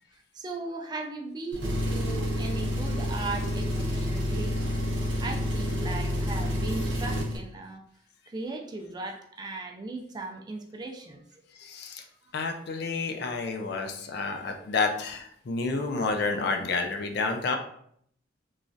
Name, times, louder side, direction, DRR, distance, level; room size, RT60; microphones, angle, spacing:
voice 1, 0.3-4.5 5.2-7.9 8.3-11.2, right 3 dB, 20° right, 2 dB, 0.3 m, -37 dB
Engine, 1.5-7.4, equal, 80° right, 0.6 m, -29 dB
voice 2, 11.6-12.0 12.3-17.6, left 4 dB, 60° left, 4 dB, 0.4 m, -30 dB
3.1 x 2.3 x 2.5 m, 0.67 s
head